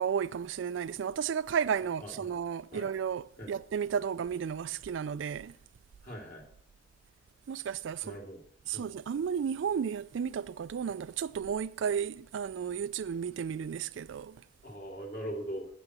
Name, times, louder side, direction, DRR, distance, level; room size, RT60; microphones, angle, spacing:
voice 1, 0.0-5.5 7.5-8.2 8.7-14.4, right 7 dB, 80° right, 0.3 m, -33 dB
voice 2, 2.0-2.3 2.7-2.9 3.4-3.5 6.0-6.4 8.0-8.4 8.7-8.9 14.6-15.7, right 1 dB, 50° left, 2.4 m, -40 dB
7.7 x 6.0 x 6.2 m
head